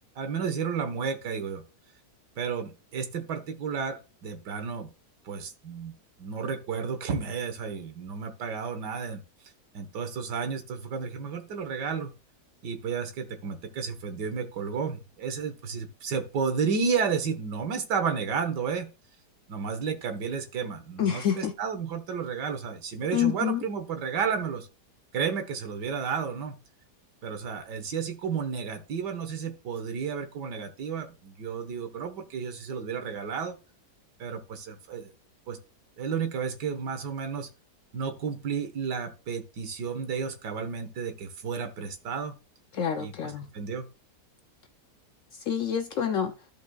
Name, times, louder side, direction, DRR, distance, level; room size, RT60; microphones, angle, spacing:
voice 1, 0.2-1.6 2.4-4.9 5.3-5.9 6.2-9.2 9.7-12.1 12.6-18.9 19.5-24.7 25.1-26.6 27.2-33.6 34.2-35.1 35.5-35.6 36.0-37.5 37.9-42.3 43.0-43.1 43.5-43.9, right 6 dB, 85° right, 1.8 m, -32 dB
voice 2, 21.0-21.5 23.1-23.6 42.7-43.5 45.3-46.3, left 9 dB, 65° left, 0.8 m, -27 dB
14.0 x 5.2 x 2.3 m
omnidirectional pair, 1.8 m